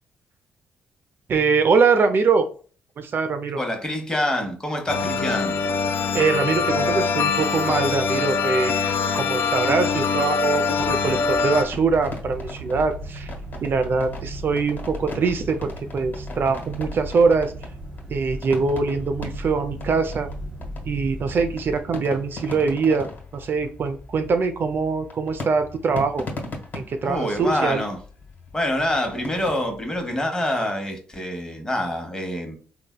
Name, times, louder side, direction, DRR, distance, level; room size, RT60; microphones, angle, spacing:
voice 1, 1.3-2.5 3.0-3.6 6.1-13.3 13.6-17.5 18.1-20.3 20.8-26.2 26.7-27.8, right 4 dB, 50° right, 0.4 m, -23 dB
voice 2, 3.6-5.6 27.0-28.0 28.5-32.6, left 1 dB, 15° left, 0.9 m, -26 dB
sound 1, 4.9-11.6, left 5 dB, 55° left, 0.4 m, -23 dB
sound 2, 10.8-30.2, left 2 dB, 40° left, 1.2 m, -39 dB
sound 3, 11.7-21.8, equal, 25° right, 1.0 m, -36 dB
3.2 x 2.1 x 2.2 m
supercardioid pair, 55°, 5 cm